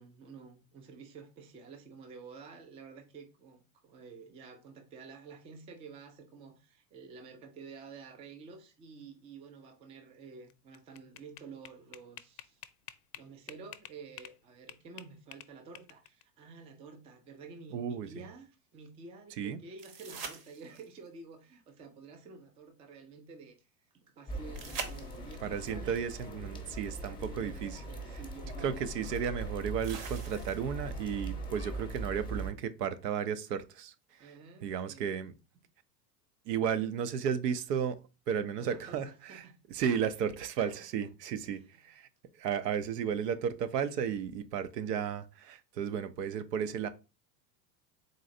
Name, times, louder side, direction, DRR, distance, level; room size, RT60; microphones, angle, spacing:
voice 1, 0.0-12.6 13.2-23.7 23.9-26.1 27.2-29.3 34.2-35.1 38.6-39.6 40.6-41.1 41.5-41.6, right 4 dB, 15° right, 0.3 m, -50 dB
sound 1, 10.5-14.4 14.7-16.2, left 13 dB, 70° left, 0.5 m, -49 dB
voice 2, 17.7-18.1 19.4-19.6 25.4-27.8 28.6-34.3 34.6-35.3 36.5-38.0 38.3-42.1 42.4-46.9, right 8 dB, 70° right, 0.6 m, -34 dB
sound 2, 19.8-21.1 24.5-25.5 27.4-27.5 29.8-30.9 33.8-33.9, right 6 dB, 40° right, 0.9 m, -43 dB
sound 3, 24.3-32.5, right 2 dB, 10° left, 0.8 m, -41 dB
4.0 x 3.1 x 2.6 m
hypercardioid pair, 90°, 50 cm